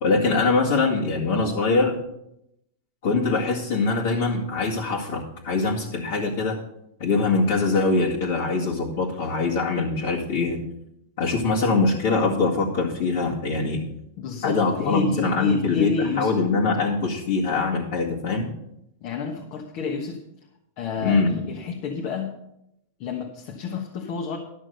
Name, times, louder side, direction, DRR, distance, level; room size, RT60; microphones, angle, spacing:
voice 1, 0.0-2.0 3.0-6.6 7.0-10.6 11.2-13.8 14.4-18.5 21.0-21.3, left 3 dB, 60° left, -4 dB, 2.0 m, -23 dB
voice 2, 14.2-16.3 19.0-20.2 20.8-22.3 23.0-24.4, left 5 dB, 45° left, 1 dB, 1.3 m, -30 dB
12.0 x 6.2 x 6.5 m, 0.81 s
supercardioid pair, 155°, 0 cm